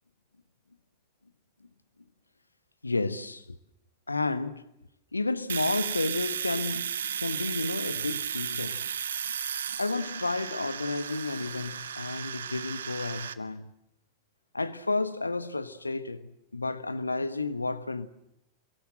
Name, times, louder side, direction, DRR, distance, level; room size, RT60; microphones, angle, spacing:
voice 1, 2.8-3.6 4.1-4.6 5.1-8.9 9.7-13.7 14.5-18.1, left 3 dB, 80° left, 1.2 m, -31 dB
Domestic sounds home sounds, 5.5-13.3, right 8 dB, 65° right, 1.1 m, -34 dB
28.5 x 23.0 x 7.8 m
figure-of-eight pair, 90°, 0 cm